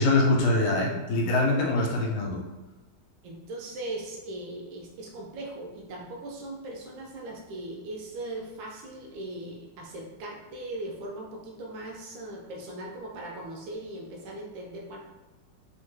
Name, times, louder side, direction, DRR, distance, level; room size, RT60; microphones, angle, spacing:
voice 1, 0.0-2.4, left 2 dB, 85° left, -1 dB, 1.5 m, -24 dB
voice 2, 3.2-15.0, right 1 dB, 75° right, -1 dB, 1.3 m, -39 dB
3.5 x 2.1 x 3.1 m, 1.1 s
omnidirectional pair, 2.3 m